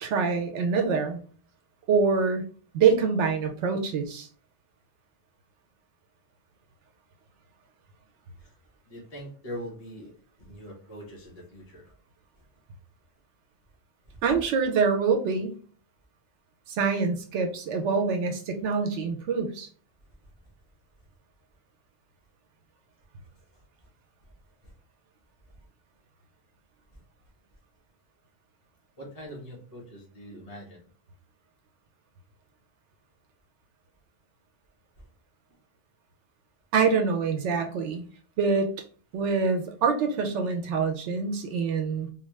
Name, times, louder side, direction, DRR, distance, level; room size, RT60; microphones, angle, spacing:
voice 1, 0.0-1.2 1.9-2.4 2.7-4.3 14.2-15.5 16.7-19.7 36.7-38.1 38.4-38.7 39.1-42.1, right 5 dB, 85° right, 4 dB, 0.9 m, -25 dB
voice 2, 8.9-10.1 10.4-11.9 14.1-14.2 29.0-30.8, equal, 35° left, -4 dB, 1.3 m, -42 dB
3.9 x 2.4 x 3.1 m, 0.44 s
omnidirectional pair, 1.2 m